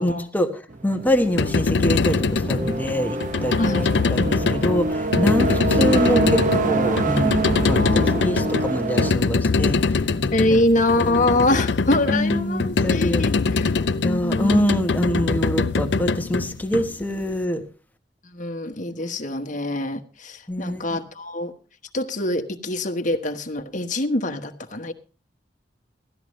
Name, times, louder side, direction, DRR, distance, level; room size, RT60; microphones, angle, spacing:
voice 1, 0.0-3.6 4.1-10.6 11.0-11.3 12.1-13.2 13.7-17.6 18.9-19.0 20.5-20.8, equal, 10° left, 6 dB, 1.3 m, -25 dB
sound 1, 0.7-9.1, right 2 dB, 50° right, 0.9 m, -25 dB
sound 2, 1.1-17.3, left 4 dB, 75° left, 0.6 m, -23 dB
voice 2, 3.6-3.9 7.7-8.7 10.3-13.7 14.0-14.6 18.2-21.5 21.9-24.9, left 1 dB, 45° left, 6 dB, 1.3 m, -25 dB
17.0 x 13.0 x 3.2 m, 0.35 s
head